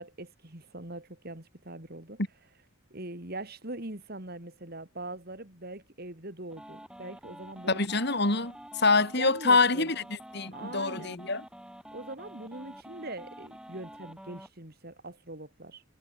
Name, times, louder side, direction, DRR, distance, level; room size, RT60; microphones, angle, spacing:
voice 1, 0.0-2.2 2.9-7.8 9.2-9.9 10.5-11.2 11.9-15.8, right 2 dB, 45° right, 3.0 m, -42 dB
sound 1, 6.5-14.5, equal, 5° right, 6.0 m, -48 dB
voice 2, 7.7-11.4, left 3 dB, 50° left, 4.0 m, -26 dB
head